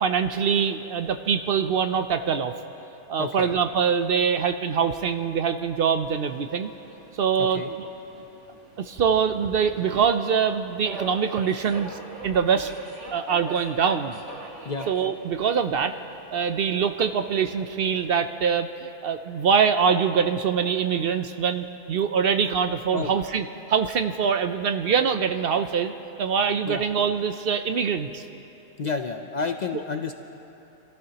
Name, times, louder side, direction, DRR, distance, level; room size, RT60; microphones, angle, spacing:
voice 1, 0.0-2.5 3.1-6.7 7.1-7.9 8.8-12.7 13.1-14.2 14.9-16.0 16.3-25.9 26.2-28.2, right 6 dB, 60° right, 8 dB, 0.7 m, -24 dB
voice 2, 3.2-3.5 7.4-7.7 14.6-14.9 22.9-23.2 26.6-26.8 28.8-30.1, left 4 dB, 50° left, 6 dB, 0.6 m, -30 dB
Subway metro underground, 6.1-18.1, right 2 dB, 85° right, 2.1 m, -44 dB
27.0 x 15.0 x 2.9 m, 3.0 s
omnidirectional pair, 1.2 m